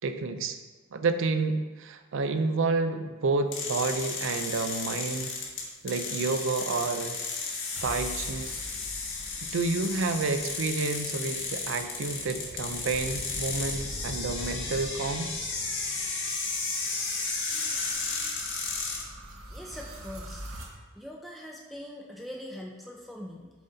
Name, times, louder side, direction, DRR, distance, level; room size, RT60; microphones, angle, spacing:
voice 1, 0.0-0.6 0.9-5.3 5.8-7.2 7.8-8.5 9.4-15.3, right 3 dB, 65° right, 8 dB, 0.5 m, -29 dB
sound 1, 3.5-19.0, left 4 dB, 60° left, 1.3 m, -34 dB
sound 2, 7.7-20.6, right 1 dB, 85° right, 1.1 m, -44 dB
voice 2, 19.5-23.5, left 1 dB, ahead, -1 dB, 0.4 m, -42 dB
7.3 x 4.0 x 3.9 m, 1.3 s
head